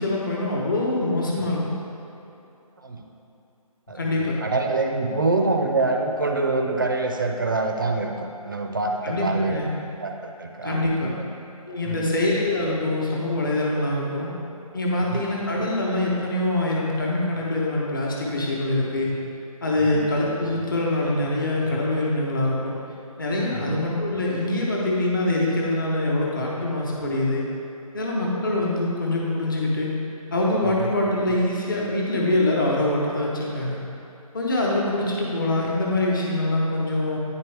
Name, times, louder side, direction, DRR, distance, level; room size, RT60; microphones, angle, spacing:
voice 1, 0.0-1.6 3.9-4.4 9.0-9.7 10.6-11.1 11.7-14.3 14.7-19.1 19.6-22.8 23.2-27.4 27.9-29.9 30.3-33.8 34.3-37.2, left 2 dB, 35° left, -3 dB, 1.1 m, -24 dB
voice 2, 3.9-9.6 10.0-10.1 10.4-11.2 11.8-12.1 15.1-15.2 19.8-20.1 23.5-23.8 30.6-30.9, right 3 dB, 35° right, 3 dB, 0.5 m, -26 dB
9.7 x 4.5 x 3.3 m, 2.9 s
hypercardioid pair, 170°, 19 cm